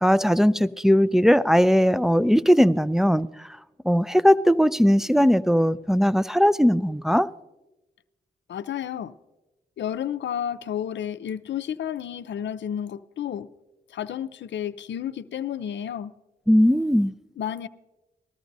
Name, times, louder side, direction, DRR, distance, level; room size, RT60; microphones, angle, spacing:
voice 1, 0.0-3.5 3.8-7.3 16.5-17.1, equal, ahead, 0.4 m, -19 dB
voice 2, 8.5-9.1 9.8-13.5 13.9-16.1 17.4-17.7, left 9 dB, 65° left, 0.5 m, -31 dB
19.5 x 13.5 x 2.6 m
supercardioid pair, 45°, 20 cm